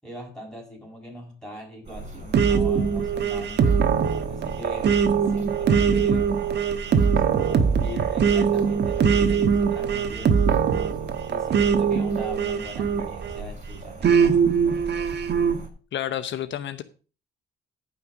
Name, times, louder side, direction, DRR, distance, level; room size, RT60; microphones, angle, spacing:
voice 1, 0.0-3.8 4.3-6.4 6.9-10.4 11.3-14.4, left 1 dB, 5° left, 7.5 m, -40 dB
sound 1, 1.8-15.7, right 2 dB, 35° right, 5.8 m, -40 dB
sound 2, 2.3-13.4 14.0-15.6, right 6 dB, 60° right, 1.4 m, -22 dB
voice 2, 15.9-16.8, left 11 dB, 70° left, 0.8 m, -30 dB
14.5 x 5.8 x 5.1 m
cardioid pair, 90°, 20 cm